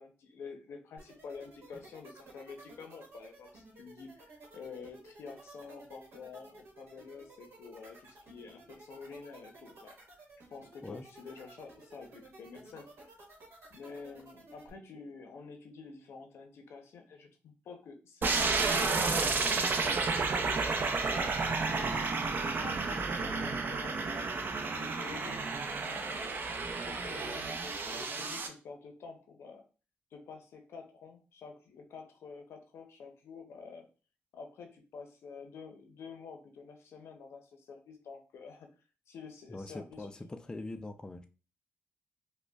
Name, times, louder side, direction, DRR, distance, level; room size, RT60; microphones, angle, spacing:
voice 1, 0.0-10.2 10.5-13.1 13.7-19.2 20.3-22.2 22.6-25.4 25.8-29.6 30.1-33.9 34.3-38.7 39.1-40.2, left 5 dB, 85° left, 5 dB, 0.7 m, -49 dB
sound 1, 1.0-14.7, right 2 dB, 75° right, 1.1 m, -54 dB
sound 2, 18.2-28.5, right 4 dB, 50° right, 0.5 m, -31 dB
voice 2, 39.5-41.3, left 2 dB, 20° left, 7 dB, 0.3 m, -42 dB
5.0 x 2.2 x 2.3 m, 0.34 s
cardioid pair, 85°, 4 cm